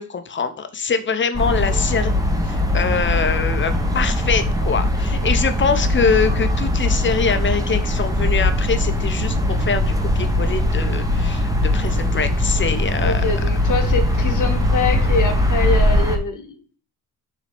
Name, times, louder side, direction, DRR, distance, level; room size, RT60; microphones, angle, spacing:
voice 1, 0.0-2.1 2.4-13.2, left 5 dB, 30° left, 0.7 m, -23 dB
sound 1, 1.3-16.2, left 1 dB, 10° right, 0.8 m, -20 dB
voice 2, 1.6-2.1 13.0-16.6, left 3 dB, 55° left, 1.1 m, -25 dB
5.0 x 3.0 x 3.4 m
supercardioid pair, 70°, 38 cm